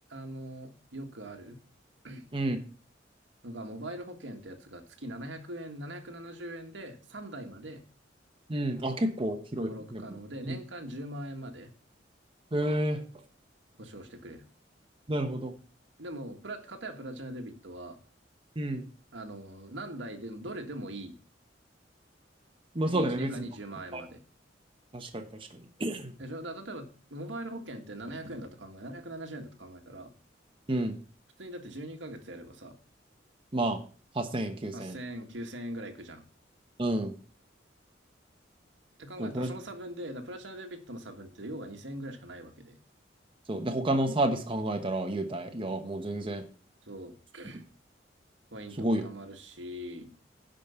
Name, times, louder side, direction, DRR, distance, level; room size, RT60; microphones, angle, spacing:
voice 1, 0.1-1.6 2.0-2.2 3.4-7.8 9.6-11.7 13.8-14.4 16.0-18.0 19.1-21.1 22.9-24.2 26.2-30.1 31.4-32.8 34.7-36.2 39.0-42.8 46.8-47.6 48.5-50.1, right 1 dB, 80° right, 4 dB, 1.7 m, -41 dB
voice 2, 8.5-10.0 10.4-10.6 12.5-13.0 15.1-15.5 18.6-18.8 22.7-23.3 23.9-24.0 24.9-25.3 25.8-26.1 30.7-31.0 33.5-33.8 34.1-35.0 36.8-37.1 39.2-39.5 43.5-46.4 48.8-49.0, right 1 dB, 30° right, 4 dB, 1.1 m, -30 dB
10.5 x 5.2 x 6.9 m, 0.39 s
head